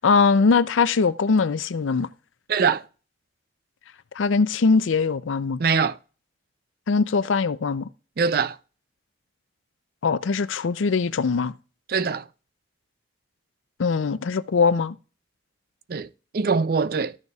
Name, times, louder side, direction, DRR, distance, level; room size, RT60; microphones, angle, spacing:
voice 1, 0.0-2.1 4.2-5.6 6.9-7.9 10.0-11.5 13.8-15.0, left 4 dB, 85° left, 0.5 m, -21 dB
voice 2, 2.5-2.8 5.6-6.0 8.2-8.6 11.9-12.2 15.9-16.1 16.3-17.2, right 5 dB, 50° right, 0.4 m, -22 dB
13.5 x 6.6 x 2.3 m
head